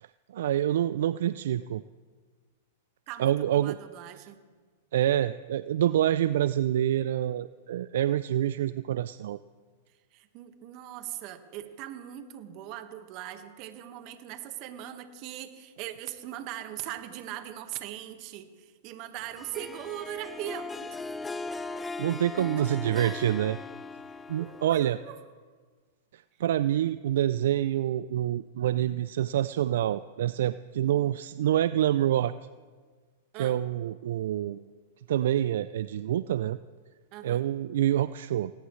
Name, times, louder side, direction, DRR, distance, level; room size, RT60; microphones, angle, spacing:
voice 1, 0.3-1.8 3.2-3.8 4.9-9.4 22.0-23.6 24.3-25.0 26.1-32.3 33.4-34.6 35.1-36.6 37.2-38.5, right 11 dB, 70° right, 15 dB, 0.3 m, -27 dB
voice 2, 3.1-4.4 10.1-21.1 22.6-23.1 24.4-25.2 33.3-33.6 37.1-37.4, right 12 dB, 45° right, 8 dB, 1.5 m, -40 dB
Harp, 19.4-25.2, left 3 dB, 10° left, 0.5 m, -39 dB
19.5 x 17.5 x 3.2 m, 1.5 s
hypercardioid pair, 120°, 0 cm